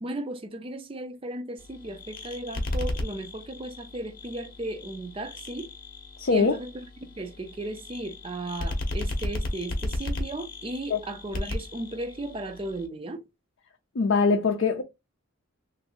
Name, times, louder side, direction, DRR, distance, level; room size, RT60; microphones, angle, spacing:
voice 1, 0.0-5.7 6.3-6.7 7.2-13.2, right 1 dB, 25° right, 0.4 m, -35 dB
sound 1, 1.6-12.9, left 1 dB, 40° left, 0.8 m, -35 dB
voice 2, 6.2-6.5 10.9-11.0 14.0-14.8, left 4 dB, 60° left, 0.5 m, -22 dB
3.2 x 2.6 x 2.9 m
head